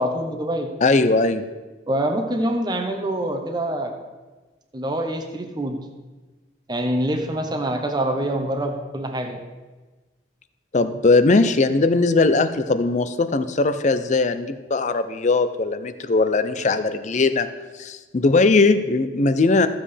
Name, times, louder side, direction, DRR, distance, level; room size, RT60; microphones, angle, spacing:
voice 1, 0.0-0.7 1.9-3.9 4.7-5.8 6.7-9.4, right 1 dB, 25° right, 4 dB, 0.9 m, -25 dB
voice 2, 0.8-1.4 10.7-17.5 17.8-19.7, left 3 dB, 40° left, 11 dB, 0.5 m, -19 dB
14.0 x 7.5 x 3.3 m, 1.2 s
head